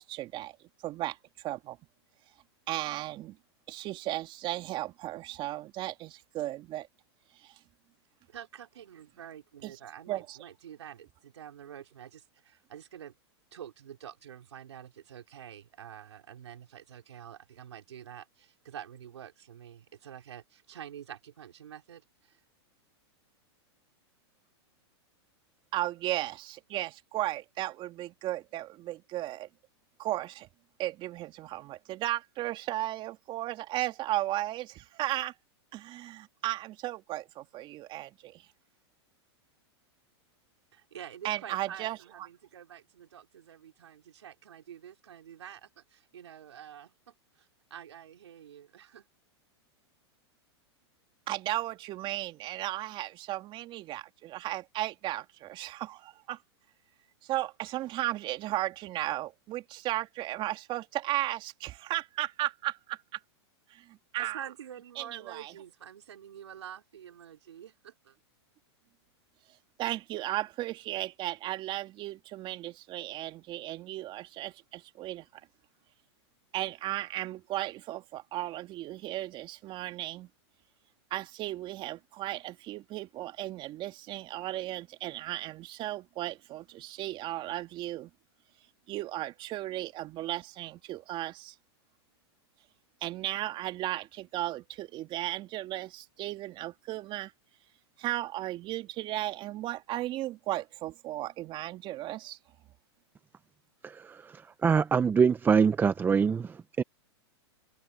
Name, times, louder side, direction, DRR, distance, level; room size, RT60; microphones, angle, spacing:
voice 1, 0.0-1.8 2.7-3.4 3.7-6.9 7.4-7.5 9.6-9.7 10.1-10.4 25.7-29.5 30.0-30.5 30.8-35.3 35.7-38.4 41.2-42.0 51.3-56.4 57.2-63.0 63.7-64.4 65.0-65.5 69.8-75.3 76.5-80.3 81.1-88.1 88.9-91.5 93.0-97.3 98.0-102.4, right 15 dB, 35° right, 2.9 m, -35 dB
voice 2, 8.3-13.1 13.5-22.4 40.7-49.1 64.2-68.2, right 9 dB, 85° right, 4.6 m, -47 dB
voice 3, 103.8-104.3 104.6-106.8, right 6 dB, 15° right, 0.6 m, -24 dB
hypercardioid pair, 125°, 14 cm